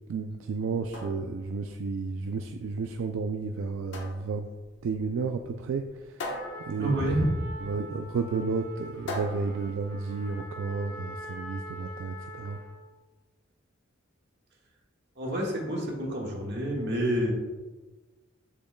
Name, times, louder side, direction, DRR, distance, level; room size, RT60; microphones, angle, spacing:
voice 1, 0.1-4.5 4.8-5.9 6.6-6.9 7.6-12.6, right 4 dB, 80° right, 6 dB, 0.4 m, -32 dB
sound 1, 0.6-10.6, left 1 dB, 65° left, 1.1 m, -42 dB
Trumpet, 6.2-12.8, equal, 25° left, 2.2 m, -44 dB
voice 2, 6.8-7.3 15.2-17.3, right 1 dB, 60° right, -2 dB, 1.6 m, -28 dB
7.8 x 6.9 x 2.2 m, 1.3 s
head